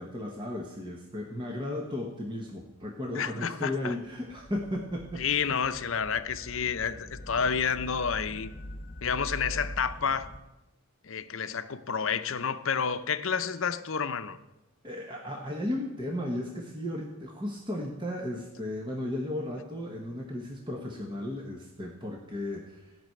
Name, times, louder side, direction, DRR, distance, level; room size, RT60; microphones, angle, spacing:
voice 1, 0.0-5.2 14.8-23.0, left 1 dB, 20° right, 0 dB, 1.3 m, -35 dB
voice 2, 3.1-3.9 5.2-8.5 9.0-10.3 11.0-14.4, left 6 dB, 60° left, 11 dB, 0.7 m, -30 dB
sound 1, 4.2-10.4, left 1 dB, 40° left, 1.3 m, -43 dB
15.5 x 6.1 x 9.2 m, 0.97 s
head